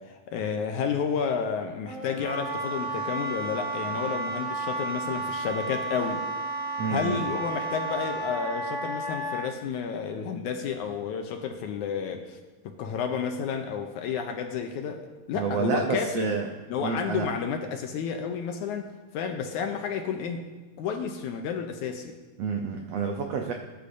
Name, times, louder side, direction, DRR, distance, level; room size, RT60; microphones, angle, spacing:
voice 1, 0.0-6.2 6.9-12.4 12.7-16.4 16.7-20.5 20.8-22.2, left 6 dB, 75° left, 4 dB, 1.9 m, -31 dB
Wind instrument woodwind instrument, 1.9-9.4, right 2 dB, 65° right, 6.1 m, -32 dB
voice 2, 6.8-7.2 15.3-16.5 16.8-17.3 22.4-23.5, right 5 dB, 85° right, 3 dB, 1.4 m, -29 dB
20.5 x 10.0 x 2.7 m, 1.3 s
omnidirectional pair, 4.0 m